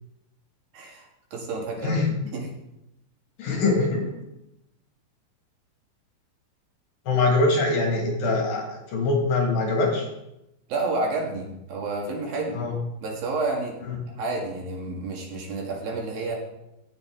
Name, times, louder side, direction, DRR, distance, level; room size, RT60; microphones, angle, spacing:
voice 1, 0.7-2.0 2.3-2.5 10.7-12.6 13.0-13.8 14.1-16.4, right 3 dB, 65° right, -1 dB, 3.3 m, -30 dB
voice 2, 3.4-4.1 7.1-10.1 12.5-12.8, left 3 dB, 65° left, 0 dB, 3.5 m, -23 dB
17.0 x 6.7 x 3.6 m, 0.88 s
omnidirectional pair, 4.8 m